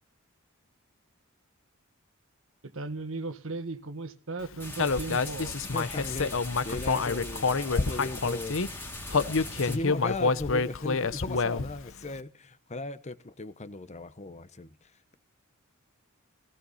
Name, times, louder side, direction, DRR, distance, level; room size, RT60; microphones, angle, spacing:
voice 1, 2.6-5.5, right 3 dB, 65° right, 10 dB, 1.7 m, -36 dB
sound 1, 4.6-9.8, left 1 dB, 10° left, 2.7 m, -40 dB
Human voice, 4.8-8.7 9.1-11.8, left 4 dB, 65° left, 0.9 m, -27 dB
voice 2, 5.7-8.6 9.1-15.1, left 2 dB, 35° left, 13 dB, 1.0 m, -38 dB
18.0 x 17.0 x 4.2 m, 0.37 s
head